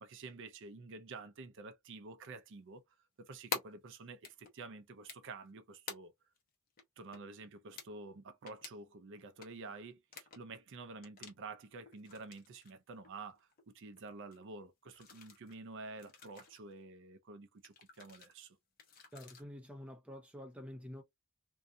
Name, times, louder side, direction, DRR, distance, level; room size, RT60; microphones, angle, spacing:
voice 1, 0.0-2.8 3.2-6.1 7.0-18.6, right 3 dB, 55° right, 0.5 m, -49 dB
sound 1, 3.5-3.6 4.2-4.5 5.1-5.5 5.9-6.0 6.4-6.5 6.8-6.9 7.1-7.5 7.8-7.9 8.5-8.7 9.2-9.5 10.1-10.6 11.0-11.3 11.9-12.7 13.0-13.7 14.0-14.1 14.3-14.4 14.8-15.5 16.0-16.6 17.6-18.3 18.8-19.4, left 5 dB, 40° left, 0.8 m, -46 dB
voice 2, 19.1-21.0, left 1 dB, 5° right, 0.6 m, -48 dB
2.5 x 2.3 x 2.5 m
head